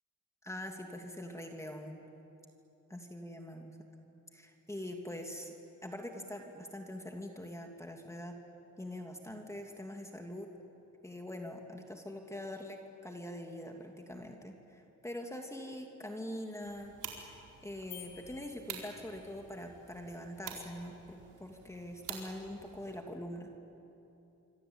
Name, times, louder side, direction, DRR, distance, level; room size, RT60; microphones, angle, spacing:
voice 1, 0.4-2.0 2.9-3.7 4.3-8.4 8.8-10.5 11.0-16.9 17.2-17.4 17.6-23.5, left 1 dB, 10° left, 3 dB, 2.8 m, -44 dB
sound 1, 16.6-23.0, right 7 dB, 85° right, 4.5 m, -49 dB
sound 2, 17.9-19.4, left 11 dB, 70° left, 4.9 m, -52 dB
26.5 x 24.5 x 9.0 m, 2.8 s
cardioid pair, 90°, 30 cm